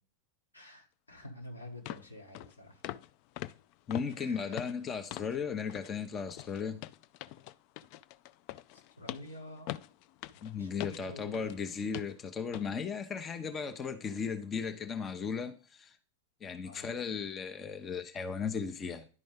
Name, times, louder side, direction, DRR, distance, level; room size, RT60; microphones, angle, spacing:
voice 1, 0.5-2.8 4.2-4.6 8.7-9.7 10.4-11.8 16.6-16.9, left 1 dB, 80° left, 1.9 m, -49 dB
sound 1, 1.2-1.3 1.9-2.1 2.3-2.5 2.8-3.1 3.4-5.4 5.7-5.9 6.3-11.6 11.9-12.2 12.5-12.7 13.2-13.3, left 15 dB, 45° left, 0.3 m, -43 dB
voice 2, 3.9-6.8 10.4-16.0 16.4-19.1, left 6 dB, 25° left, 0.7 m, -36 dB
11.0 x 5.1 x 3.6 m
figure-of-eight pair, 90°, 0 cm